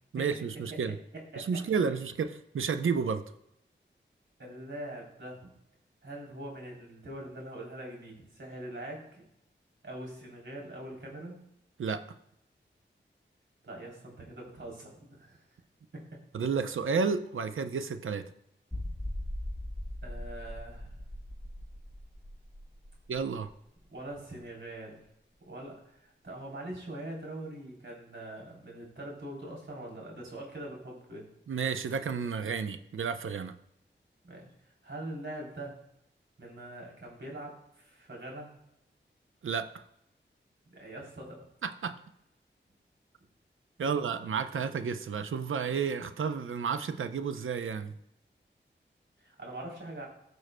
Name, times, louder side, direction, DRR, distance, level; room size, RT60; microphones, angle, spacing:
voice 1, 0.1-0.9 1.4-3.2 11.8-12.0 16.3-18.2 23.1-23.5 31.5-33.5 39.4-39.7 41.6-42.0 43.8-47.9, right 6 dB, 85° right, 9 dB, 0.6 m, -31 dB
voice 2, 4.4-5.5 6.0-9.3 9.8-11.4 13.6-15.4 15.9-16.0 20.0-21.0 23.9-25.0 25.4-31.3 34.2-35.7 36.4-38.5 40.6-41.5 43.8-43.9 49.2-50.1, right 1 dB, 70° right, -2 dB, 3.3 m, -43 dB
sound 1, 18.7-24.1 24.4-24.5 25.1-25.2, left 1 dB, ahead, 1.5 m, -40 dB
15.0 x 6.3 x 2.2 m, 0.79 s
cardioid pair, 45°, 20 cm